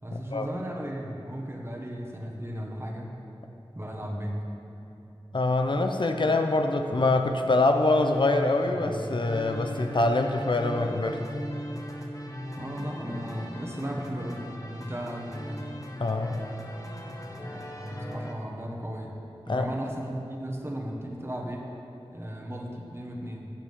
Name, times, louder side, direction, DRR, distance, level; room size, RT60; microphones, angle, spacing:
voice 1, 0.0-3.1 3.7-4.5 12.6-15.6 17.4-19.2 19.5-21.7 22.1-23.5, equal, 25° right, 0 dB, 1.5 m, -35 dB
voice 2, 5.3-11.2 16.0-16.4 19.5-19.7, left 2 dB, 55° left, 5 dB, 0.6 m, -24 dB
sound 1, 7.9-18.3, equal, 35° left, 1.1 m, -39 dB
14.5 x 7.5 x 3.6 m, 2.9 s
wide cardioid pair, 40°, 10 cm